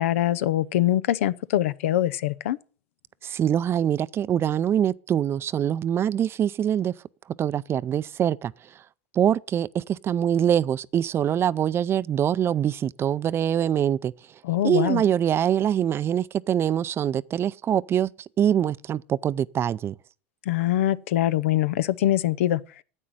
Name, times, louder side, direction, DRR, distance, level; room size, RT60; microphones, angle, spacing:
voice 1, 0.0-2.6 14.4-15.0 20.5-22.6, left 13 dB, 80° left, 0.6 m, -23 dB
voice 2, 3.2-6.9 7.4-8.5 9.1-14.1 14.6-18.1 18.4-19.9, right 9 dB, 35° right, 0.5 m, -24 dB
9.9 x 8.3 x 7.8 m
hypercardioid pair, 90°, 7 cm